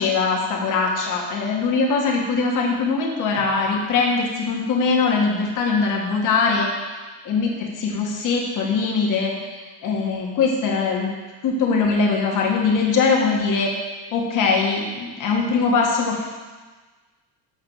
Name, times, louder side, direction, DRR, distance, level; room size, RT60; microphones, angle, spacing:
voice 1, 0.0-6.7 7.3-11.1 11.4-13.7 14.1-16.3, left 4 dB, 50° left, -1 dB, 1.8 m, -21 dB
6.9 x 6.2 x 5.6 m, 1.3 s
cardioid pair, 145°, 41 cm